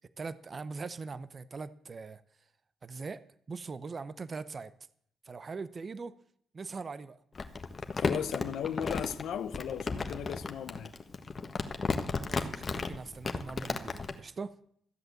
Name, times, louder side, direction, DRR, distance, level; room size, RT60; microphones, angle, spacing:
voice 1, 0.2-2.2 2.8-4.7 5.2-6.1 6.5-7.2 12.2-14.6, right 4 dB, 35° right, 0.7 m, -41 dB
Crumpling crinkling, 7.3-14.1, left 4 dB, 35° left, 1.5 m, -34 dB
voice 2, 7.9-10.9, left 9 dB, 75° left, 0.8 m, -36 dB
14.5 x 7.9 x 7.7 m
cardioid pair, 90°, 0 cm